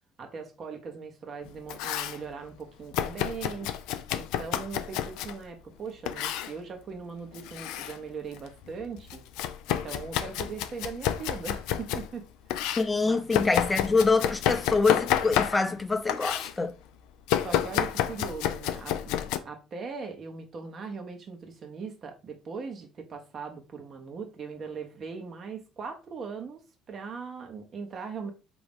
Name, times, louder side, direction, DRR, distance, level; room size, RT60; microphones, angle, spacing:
voice 1, 0.2-3.7 4.1-9.2 9.7-12.2 13.0-13.2 17.4-26.6 26.9-28.3, right 5 dB, 45° right, 1.2 m, -40 dB
Domestic sounds home sounds, 1.4-2.2 2.9-5.4 6.1-6.5 7.3-8.0 8.3-12.1 12.5-15.8 16.1-16.5 17.3-19.4, left 11 dB, 75° left, 0.4 m, -30 dB
voice 2, 12.8-16.7, left 3 dB, 20° left, 0.7 m, -25 dB
3.9 x 3.0 x 3.6 m
hypercardioid pair, 65°, 0 cm